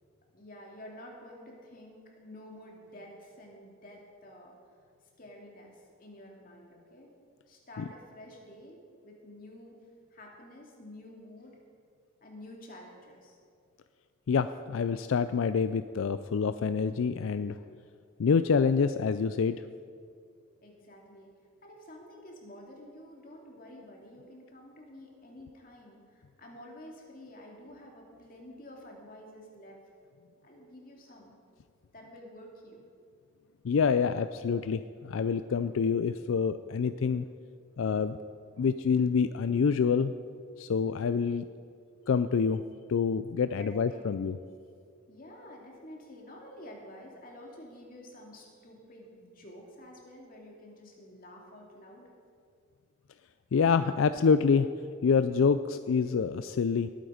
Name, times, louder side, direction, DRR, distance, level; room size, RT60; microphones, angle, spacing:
voice 1, 0.3-4.6 5.2-7.1 7.5-9.7 10.1-11.6 12.2-13.4 20.6-21.3 21.6-29.8 30.4-31.4 31.9-32.8 43.5-44.3 45.1-52.1, left 1 dB, 45° left, -1 dB, 2.5 m, -50 dB
voice 2, 14.3-17.6 18.2-19.6 33.6-37.2 37.8-38.2 38.6-40.1 40.6-41.4 42.1-42.6 42.9-44.4 53.5-54.7 55.0-56.9, left 5 dB, 80° left, 11 dB, 0.4 m, -26 dB
19.5 x 9.0 x 5.0 m, 2.3 s
head